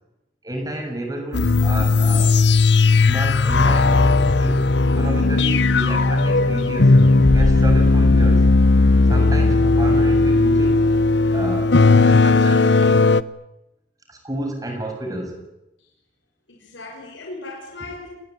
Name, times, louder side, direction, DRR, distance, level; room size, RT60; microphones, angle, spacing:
voice 1, 0.4-2.4 3.0-7.0 7.3-8.5 9.1-10.9 11.3-12.9 14.1-15.4, right 1 dB, 20° right, 3 dB, 6.9 m, -31 dB
sound 1, 1.3-13.2, left 3 dB, 70° left, 0.9 m, -16 dB
voice 2, 16.5-18.1, left 2 dB, 85° left, 1 dB, 5.5 m, -37 dB
28.5 x 20.5 x 9.3 m, 0.90 s
head